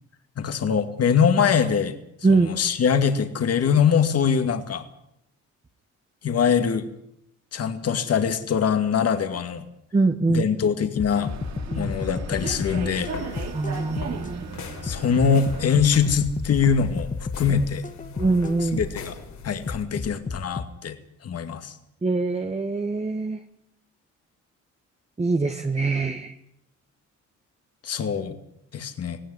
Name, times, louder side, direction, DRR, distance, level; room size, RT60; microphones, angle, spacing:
voice 1, 0.4-1.9 2.3-4.8 6.2-6.8 7.5-9.6 10.3-11.3 11.7-13.1 14.8-17.1 17.4-17.8 18.6-19.2 19.4-21.0 21.2-21.7 27.8-28.4 28.7-29.2, left 7 dB, 55° left, 8 dB, 2.3 m, -23 dB
voice 2, 9.9-10.4 11.7-11.9 13.5-14.4 18.2-18.8 22.0-23.4 25.2-26.3, right 3 dB, 20° right, 6 dB, 1.5 m, -23 dB
sound 1, 11.0-14.3 14.9-19.1 19.7-20.7, left 4 dB, 25° left, 1.2 m, -32 dB
sound 2, 11.1-16.2, right 7 dB, 60° right, 2.4 m, -38 dB
sound 3, 12.9-19.8, left 5 dB, 75° left, 4.7 m, -40 dB
18.0 x 17.5 x 9.7 m, 0.75 s
cardioid pair, 90°, 30 cm